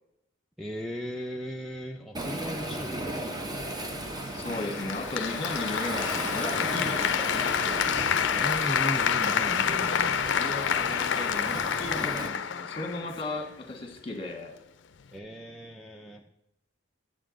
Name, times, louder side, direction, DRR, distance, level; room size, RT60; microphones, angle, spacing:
voice 1, 0.6-3.3 8.4-10.2 15.1-16.2, equal, ahead, 2 dB, 0.4 m, -37 dB
Waves surf, 2.1-12.3, right 1 dB, 20° right, 0.8 m, -35 dB
voice 2, 4.3-7.3 10.4-14.5, left 2 dB, 25° left, 5 dB, 1.4 m, -36 dB
Applause, 4.5-13.5, left 8 dB, 60° left, 0.4 m, -28 dB
10.0 x 7.4 x 3.8 m, 0.85 s
head